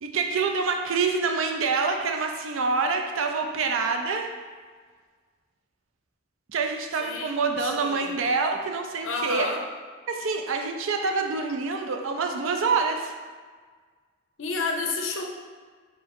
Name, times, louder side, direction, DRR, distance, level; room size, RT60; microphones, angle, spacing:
voice 1, 0.0-4.3 6.5-9.5 10.1-13.1, right 4 dB, 70° right, 4 dB, 0.5 m, -26 dB
voice 2, 7.0-8.1 9.0-9.6 14.4-15.3, left 3 dB, 65° left, 1 dB, 0.6 m, -30 dB
4.5 x 2.8 x 3.5 m, 1.5 s
head